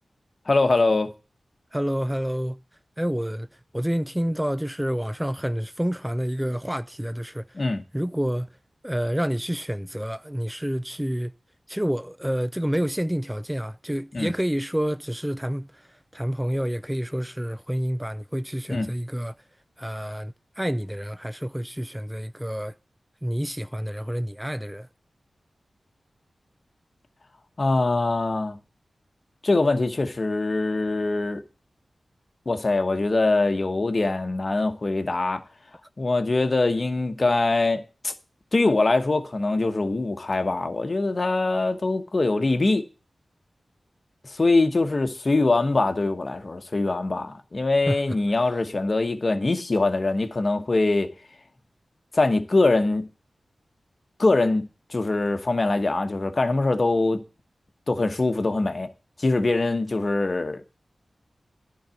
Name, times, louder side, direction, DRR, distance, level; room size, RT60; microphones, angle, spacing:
voice 1, 0.5-1.1 7.5-7.8 14.1-14.3 18.7-18.9 27.6-28.6 29.4-31.4 32.5-35.4 36.0-38.1 38.5-42.8 44.2-51.1 52.1-53.1 54.2-57.2 57.9-58.9 59.2-60.6, left 2 dB, 50° left, 1.1 m, -23 dB
voice 2, 1.7-2.6 3.0-3.5 3.7-7.6 7.9-8.5 8.8-11.3 11.7-19.4 19.8-22.7 23.2-24.9 47.9-48.0, equal, 10° right, 0.4 m, -28 dB
10.5 x 4.0 x 7.7 m
cardioid pair, 45°, 0 cm